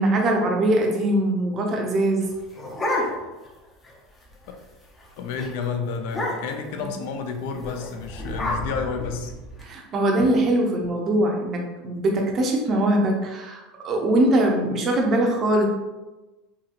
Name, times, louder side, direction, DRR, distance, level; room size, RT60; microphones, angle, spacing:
voice 1, 0.0-2.3 9.6-15.6, right 1 dB, 35° right, 1 dB, 0.6 m, -22 dB
sound 1, 2.2-3.5 3.8-3.9 4.2-4.5 4.9-5.1 5.4-5.5 6.0-6.7 7.6-9.6, left 1 dB, 20° left, 0.6 m, -30 dB
voice 2, 5.2-9.3, left 5 dB, 70° left, 5 dB, 0.4 m, -30 dB
2.8 x 2.8 x 2.5 m, 1.1 s
supercardioid pair, 135°, 0 cm